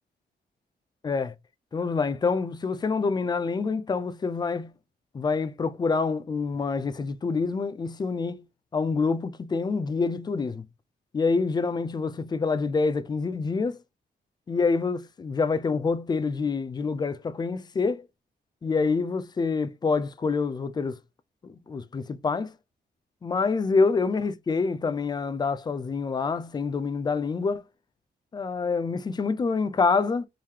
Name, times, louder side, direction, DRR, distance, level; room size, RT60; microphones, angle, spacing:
voice 1, 1.0-1.3 1.7-4.7 5.1-8.4 8.7-10.6 11.1-13.8 14.5-18.0 18.6-21.0 21.4-22.5 23.2-27.6 28.3-30.3, left 4 dB, 25° left, 0.4 m, -26 dB
3.7 x 3.2 x 2.7 m
wide cardioid pair, 160°, 18 cm